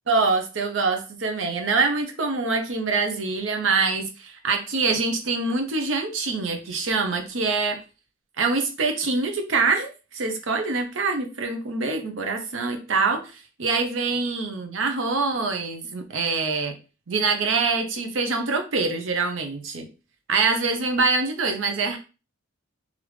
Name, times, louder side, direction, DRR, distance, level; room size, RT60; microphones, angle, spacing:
voice 1, 0.1-7.8 8.4-16.7 17.1-19.9 20.3-22.0, right 4 dB, 80° right, 5 dB, 0.7 m, -25 dB
3.3 x 2.5 x 3.1 m, 0.32 s
head